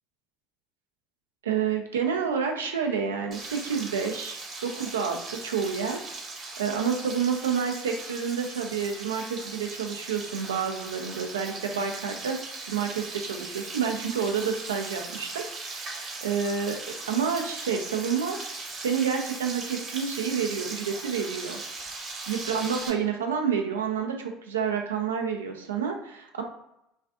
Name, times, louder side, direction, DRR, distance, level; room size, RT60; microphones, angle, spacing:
voice 1, 1.4-6.0 6.6-12.4 12.6-15.4 15.7-16.8 17.1-18.4 18.8-21.6 22.3-26.4, right 6 dB, 85° right, 3 dB, 0.4 m, -29 dB
Frying (food), 3.3-22.9, right 3 dB, 40° right, 0.9 m, -39 dB
2.4 x 2.4 x 2.3 m, 0.81 s
hypercardioid pair, 70°, 0 cm